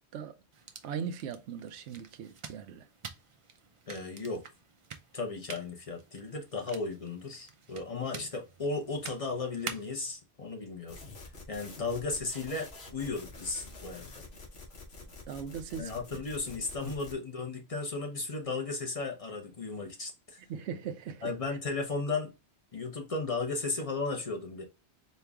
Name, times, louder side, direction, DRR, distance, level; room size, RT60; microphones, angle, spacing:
sound 1, 0.5-10.1, right 5 dB, 50° right, 0.4 m, -48 dB
voice 1, 0.8-2.9 15.0-15.9 16.9-17.0 20.5-21.3, right 7 dB, 85° right, 0.9 m, -39 dB
voice 2, 3.9-4.4 5.1-11.0 11.5-14.2 15.7-20.4 21.2-22.3 22.7-24.6, left 3 dB, 35° left, 0.7 m, -35 dB
sound 2, 10.9-17.1, left 3 dB, 70° left, 1.2 m, -48 dB
4.3 x 2.3 x 3.4 m
omnidirectional pair, 1.1 m